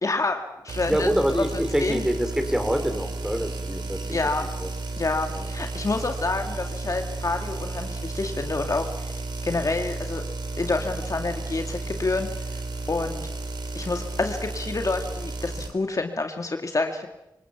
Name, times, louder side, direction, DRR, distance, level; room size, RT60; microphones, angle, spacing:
voice 1, 0.0-1.4 1.8-2.0 4.1-4.5 5.0-9.1 9.4-10.2 10.6-12.3 12.9-13.3 13.7-17.1, left 3 dB, 45° left, 5 dB, 2.1 m, -28 dB
sound 1, 0.7-15.7, right 3 dB, 75° right, 3.7 m, -33 dB
voice 2, 0.9-4.3 4.6-4.7 5.3-5.5, equal, 5° right, 8 dB, 4.5 m, -26 dB
26.0 x 18.5 x 7.2 m, 0.90 s
cardioid pair, 45°, 8 cm